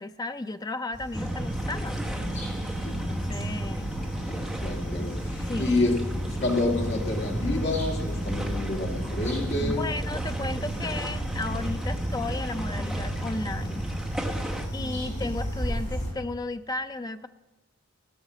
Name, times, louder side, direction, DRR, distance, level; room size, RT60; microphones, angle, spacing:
voice 1, 0.0-2.1 2.9-3.9 5.5-5.8 9.6-13.9 14.7-17.3, left 2 dB, 20° left, 0.4 m, -34 dB
sound 1, 0.9-16.1, equal, 35° left, 3.3 m, -34 dB
sound 2, 1.1-14.7, right 1 dB, ahead, 1.1 m, -34 dB
voice 2, 4.2-6.0 6.4-9.9 14.8-15.3, left 2 dB, 50° left, 1.8 m, -29 dB
17.5 x 6.5 x 6.1 m
head